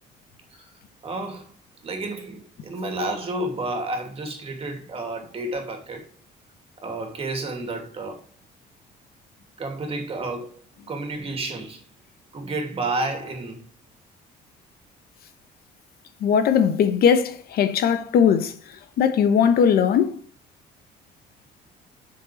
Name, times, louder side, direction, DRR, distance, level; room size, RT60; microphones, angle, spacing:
voice 1, 1.0-1.5 1.8-6.1 6.8-8.2 9.6-11.8 12.3-13.7, right 2 dB, 35° right, 2.8 m, -31 dB
voice 2, 16.2-18.6 19.0-20.2, left 7 dB, 65° left, 1.1 m, -19 dB
8.0 x 6.2 x 5.0 m
cardioid pair, 110°, 17 cm